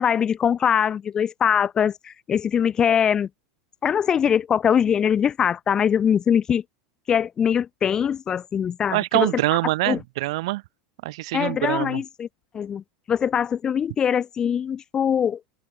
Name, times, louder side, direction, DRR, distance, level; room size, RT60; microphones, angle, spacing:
voice 1, 0.0-3.3 3.8-6.6 7.1-9.3 9.9-10.0 11.3-12.3 12.5-12.8 13.1-15.4, left 8 dB, 25° left, 1.0 m, -22 dB
voice 2, 8.9-10.6 11.0-12.0, right 20 dB, 70° right, 1.4 m, -24 dB
supercardioid pair, 145°, 3 cm